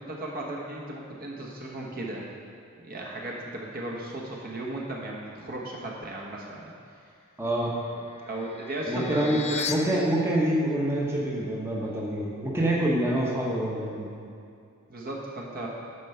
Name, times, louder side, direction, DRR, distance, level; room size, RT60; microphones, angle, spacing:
voice 1, 0.0-2.3 2.8-6.7 8.2-10.0 14.9-15.7, right 1 dB, 45° right, -2 dB, 1.1 m, -35 dB
voice 2, 7.4-7.7 8.9-9.4 9.7-14.2, right 1 dB, 10° right, -5 dB, 1.0 m, -26 dB
sound 1, 7.5-9.7, left 7 dB, 30° left, 0.4 m, -37 dB
9.9 x 4.6 x 5.5 m, 2.4 s
head